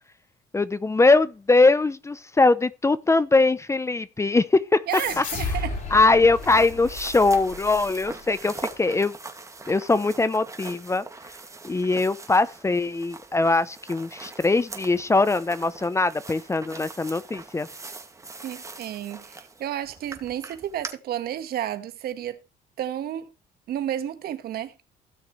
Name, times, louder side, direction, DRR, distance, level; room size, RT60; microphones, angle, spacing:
voice 1, 0.5-4.8 5.2-5.3 5.9-9.1 9.7-11.1 11.6-17.7, left 3 dB, 15° left, 0.7 m, -21 dB
sound 1, 4.9-8.1, left 3 dB, 50° left, 7.4 m, -33 dB
voice 2, 4.9-6.0 18.4-22.4 22.8-23.3 23.7-24.7, right 11 dB, 65° right, 1.6 m, -31 dB
sound 2, 5.7-20.9, right 3 dB, 20° right, 2.2 m, -42 dB
17.0 x 6.6 x 3.2 m
cardioid pair, 110°, 17 cm